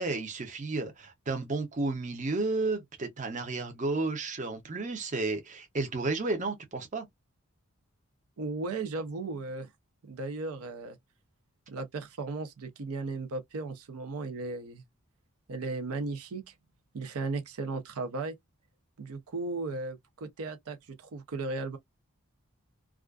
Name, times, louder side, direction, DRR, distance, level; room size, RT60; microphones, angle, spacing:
voice 1, 0.0-7.1, right 3 dB, 35° right, 0.6 m, -32 dB
voice 2, 8.4-9.7 10.1-11.0 11.7-14.8 15.5-16.5 16.9-18.4 19.0-21.8, right 3 dB, 75° right, 0.5 m, -36 dB
2.4 x 2.3 x 2.3 m
head